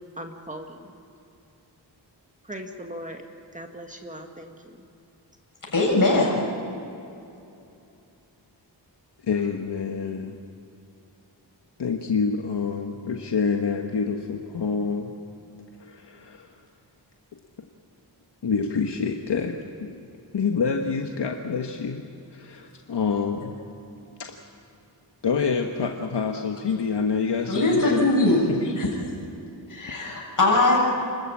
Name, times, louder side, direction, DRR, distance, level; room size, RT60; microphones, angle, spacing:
voice 1, 0.2-0.9 2.5-3.2 3.5-4.5, right 1 dB, 15° right, 3 dB, 1.9 m, -38 dB
voice 2, 5.7-6.3 27.5-28.4 28.8-28.9 29.7-30.8, left 2 dB, 50° left, -2 dB, 7.2 m, -20 dB
voice 3, 9.3-10.4 11.8-15.1 15.8-16.5 18.4-20.0 20.3-22.0 22.3-23.6 24.2-24.4 25.2-28.1 28.5-28.7, left 5 dB, 70° left, 2 dB, 1.5 m, -27 dB
29.5 x 13.5 x 8.7 m, 2.7 s
wide cardioid pair, 80°, 43 cm